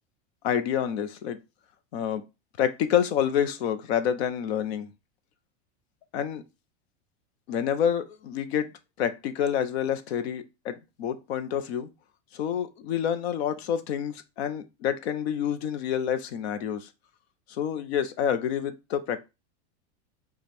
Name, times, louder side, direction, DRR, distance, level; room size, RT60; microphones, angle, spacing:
voice 1, 0.4-1.4 1.9-2.2 2.6-4.9 6.1-6.4 7.5-8.7 9.0-11.9 12.3-16.9 17.5-19.2, left 9 dB, 65° left, 0.8 m, -28 dB
5.0 x 2.4 x 4.3 m
supercardioid pair, 165°, 34 cm